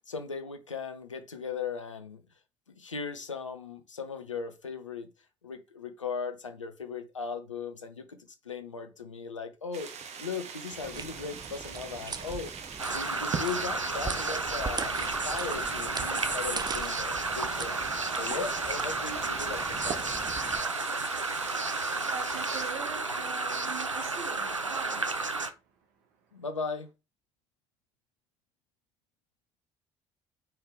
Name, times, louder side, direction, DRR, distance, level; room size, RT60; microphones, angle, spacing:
voice 1, 0.1-2.2 2.7-5.1 5.4-8.2 8.4-9.9 10.2-12.5 12.9-17.8 18.2-20.1 26.3-26.9, left 5 dB, 85° left, 0.7 m, -38 dB
sound 1, 9.7-22.7, right 6 dB, 45° right, 1.3 m, -42 dB
sound 2, 10.8-20.6, right 5 dB, 25° right, 0.7 m, -41 dB
sound 3, 12.8-25.5, right 3 dB, 90° right, 0.5 m, -32 dB
voice 2, 21.7-25.3, right 7 dB, 65° right, 1.7 m, -43 dB
6.4 x 4.7 x 3.4 m
figure-of-eight pair, 50°, 16 cm